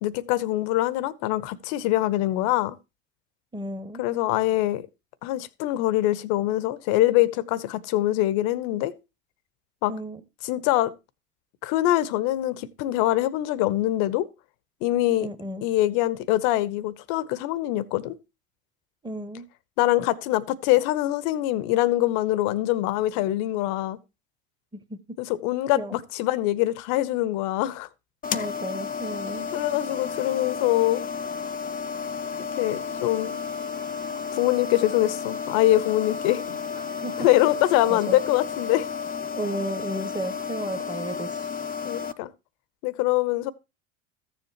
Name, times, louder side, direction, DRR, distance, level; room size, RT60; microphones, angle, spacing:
voice 1, 0.0-2.8 4.0-4.9 5.2-8.9 9.8-9.9 10.4-10.9 11.6-14.3 14.8-15.3 15.6-18.2 19.8-24.0 25.2-27.9 29.5-31.0 32.4-33.3 34.3-36.7 37.2-38.9 41.8-42.3 42.8-43.5, left 15 dB, 60° left, 0.8 m, -24 dB
voice 2, 3.5-4.0 9.9-10.2 15.2-15.7 19.0-19.4 24.7-25.0 25.8-26.0 28.3-29.5 36.8-37.1 37.9-38.2 39.3-41.5, right 1 dB, 15° right, 1.2 m, -33 dB
sound 1, 28.2-42.1, left 6 dB, 25° left, 0.6 m, -32 dB
14.0 x 7.2 x 2.9 m
hypercardioid pair, 85°, 34 cm